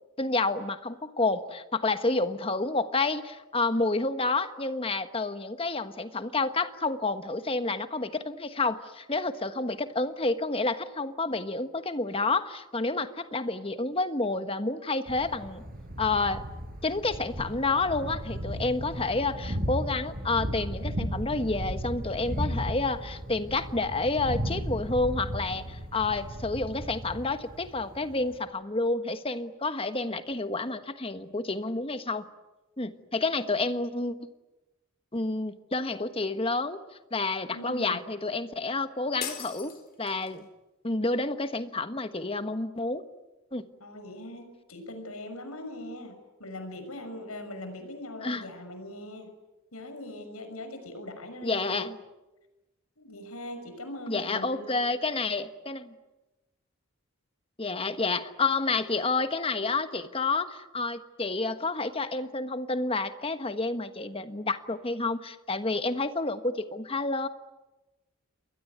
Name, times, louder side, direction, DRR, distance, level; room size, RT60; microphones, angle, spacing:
voice 1, 0.2-15.6 16.0-16.4 16.8-32.2 32.8-34.1 35.1-36.8 37.1-40.5 40.8-43.0 43.5-43.6 48.2-48.4 51.4-52.0 54.1-55.9 57.6-67.3, left 3 dB, 25° left, 10 dB, 1.3 m, -29 dB
Thunder, 15.1-28.4, equal, 40° right, 7.1 m, -35 dB
voice 2, 37.5-38.0 43.8-49.3 49.7-51.9 53.0-54.9, left 1 dB, 80° left, 7 dB, 6.2 m, -41 dB
sound 1, 39.2-40.5, left 8 dB, 40° left, 4.1 m, -39 dB
28.0 x 22.0 x 9.4 m, 1.1 s
head